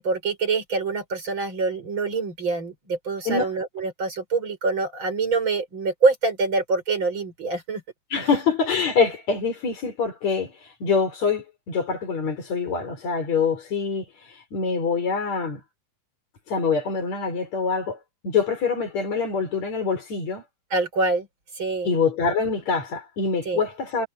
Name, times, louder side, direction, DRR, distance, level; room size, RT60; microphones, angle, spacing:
voice 1, 0.0-7.8 20.7-21.3 21.6-21.9 23.5-23.6, right 3 dB, 40° right, 6.2 m, -25 dB
voice 2, 8.1-10.5 10.8-14.1 14.5-15.6 16.5-18.0 18.2-20.4 21.8-24.1, left 5 dB, 65° left, 5.4 m, -25 dB
omnidirectional pair, 3.4 m